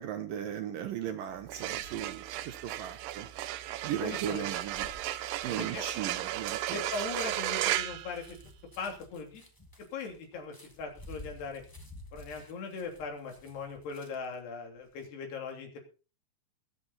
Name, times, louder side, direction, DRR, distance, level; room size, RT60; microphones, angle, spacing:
voice 1, 0.0-3.3 3.8-4.9 5.4-6.8, right 10 dB, 70° right, 8 dB, 2.4 m, -37 dB
sound 1, 1.4-8.8, right 14 dB, 85° right, 2.9 m, -35 dB
voice 2, 4.0-4.5 5.5-5.9 6.7-8.4 8.8-9.4 9.9-11.6 12.1-15.8, left 4 dB, 75° left, 3 dB, 5.2 m, -39 dB
sound 2, 4.2-14.4 14.8-15.1, left 1 dB, 25° left, 0.4 m, -53 dB
21.0 x 8.5 x 4.2 m, 0.34 s
omnidirectional pair, 4.7 m